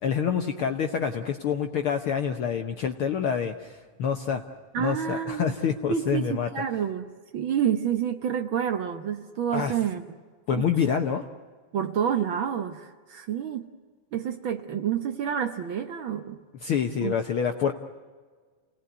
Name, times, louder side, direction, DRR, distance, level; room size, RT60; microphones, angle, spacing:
voice 1, 0.0-4.4 4.8-6.5 9.5-9.7 10.5-11.2 16.6-17.7, left 7 dB, 65° left, 5 dB, 1.4 m, -27 dB
voice 2, 4.7-5.5 5.9-10.0 10.5-10.7 11.7-13.7 14.1-16.4 17.0-17.1, right 8 dB, 65° right, 7 dB, 1.2 m, -28 dB
28.5 x 19.0 x 9.3 m, 1.5 s
omnidirectional pair, 3.6 m